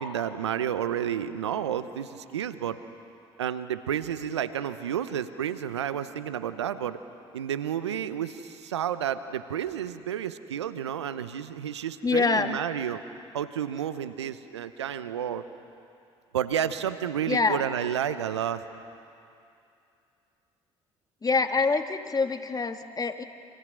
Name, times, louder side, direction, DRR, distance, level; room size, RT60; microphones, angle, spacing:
voice 1, 0.0-2.8 3.4-7.0 7.3-13.0 13.3-15.4 16.3-18.6, right 9 dB, 85° right, 12 dB, 0.9 m, -31 dB
voice 2, 12.0-12.6 17.3-17.6 21.2-23.2, left 4 dB, 25° left, 7 dB, 1.9 m, -25 dB
28.5 x 26.5 x 6.3 m, 2.6 s
hypercardioid pair, 55°, 14 cm